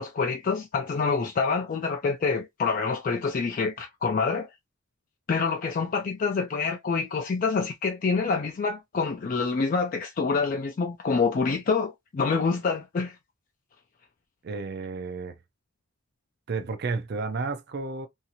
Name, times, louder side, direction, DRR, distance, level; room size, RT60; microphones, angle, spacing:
voice 1, 0.0-4.5 5.3-13.2, left 4 dB, 40° left, 0.3 m, -26 dB
voice 2, 14.4-15.4 16.5-18.1, right 4 dB, 50° right, 0.4 m, -32 dB
2.7 x 2.4 x 2.8 m
head